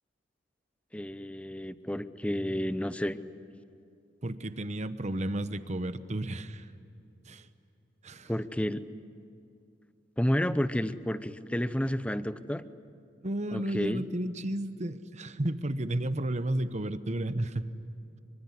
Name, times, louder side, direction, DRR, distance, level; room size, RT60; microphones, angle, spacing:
voice 1, 0.9-3.2 8.3-8.8 10.2-12.6 13.5-14.0, equal, 5° left, 13 dB, 0.7 m, -30 dB
voice 2, 4.2-6.6 7.3-7.5 8.0-8.3 13.2-17.7, right 1 dB, 40° right, 11 dB, 1.0 m, -32 dB
24.5 x 24.0 x 9.8 m, 2.5 s
head